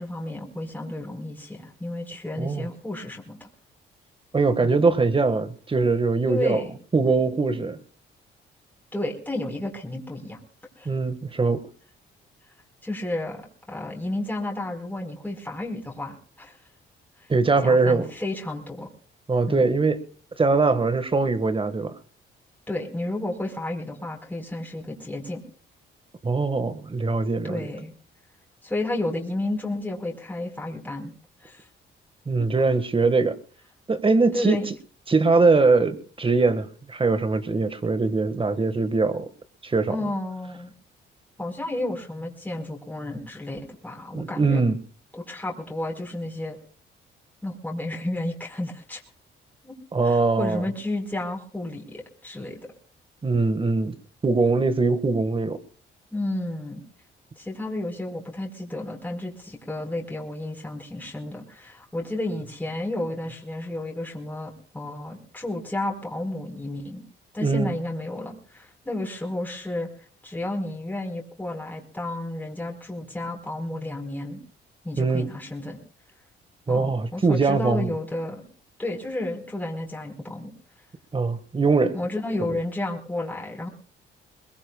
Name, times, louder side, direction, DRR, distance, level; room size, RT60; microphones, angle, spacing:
voice 1, 0.0-3.5 4.6-4.8 6.3-6.7 8.9-10.4 10.8-10.9 12.8-16.6 17.2-17.3 17.6-18.9 19.5-19.7 22.7-25.4 27.4-27.9 28.6-31.1 31.4-31.7 32.4-32.5 34.3-34.7 39.9-40.7 41.4-44.6 45.1-46.6 47.4-49.0 49.6-49.8 50.0-52.6 56.1-56.8 57.4-67.0 67.3-69.9 70.2-74.4 74.8-75.8 76.7-78.5 78.8-80.5 81.9-83.7, left 1 dB, 10° left, 0 dB, 4.5 m, -32 dB
voice 2, 4.3-6.6 6.9-7.8 10.8-11.6 17.3-18.1 19.3-20.0 20.4-21.9 26.2-27.7 32.3-33.4 33.9-34.6 35.1-39.2 39.6-40.0 44.1-44.8 49.9-50.6 53.2-53.9 54.2-55.6 67.4-67.7 75.0-75.3 76.7-77.9 81.1-82.0, right 3 dB, 25° right, 11 dB, 1.6 m, -22 dB
22.5 x 21.5 x 2.3 m, 0.43 s
cardioid pair, 90°, 20 cm